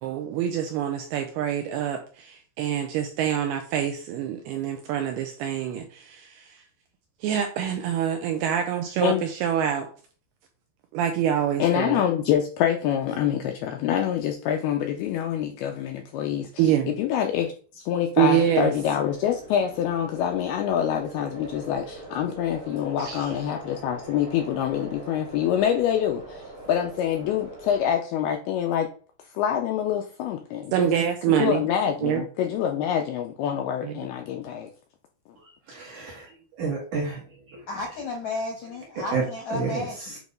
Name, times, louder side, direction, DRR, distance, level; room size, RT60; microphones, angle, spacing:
voice 1, 0.0-6.6 7.2-9.9 10.9-12.0 16.6-16.9 18.2-18.7 23.0-23.3 30.7-31.6 32.0-32.2 33.8-33.9, right 9 dB, 80° right, 4 dB, 2.3 m, -26 dB
voice 2, 11.6-16.7 17.0-28.9 29.3-30.9 31.3-34.7, left 9 dB, 90° left, 3 dB, 2.3 m, -26 dB
sound 1, 18.4-27.9, right 2 dB, 40° right, 1.2 m, -42 dB
voice 3, 35.7-36.3 36.6-37.2 37.5-37.6 39.1-39.2 39.5-40.2, right 4 dB, 65° right, -2 dB, 2.0 m, -29 dB
voice 4, 37.7-40.2, left 2 dB, 70° left, 0 dB, 1.7 m, -33 dB
8.2 x 3.1 x 5.2 m, 0.40 s
omnidirectional pair, 5.2 m